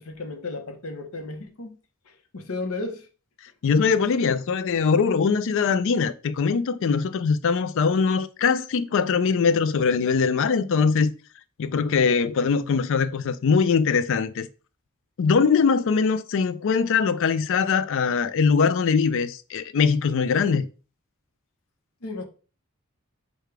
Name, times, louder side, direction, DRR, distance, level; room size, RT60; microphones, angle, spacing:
voice 1, 0.0-1.8 2.1-3.1 22.0-22.2, left 3 dB, 75° left, 0.8 m, -34 dB
voice 2, 3.6-11.1 11.6-14.5 15.2-20.7, left 5 dB, 60° left, 0.4 m, -22 dB
4.8 x 2.3 x 4.7 m
head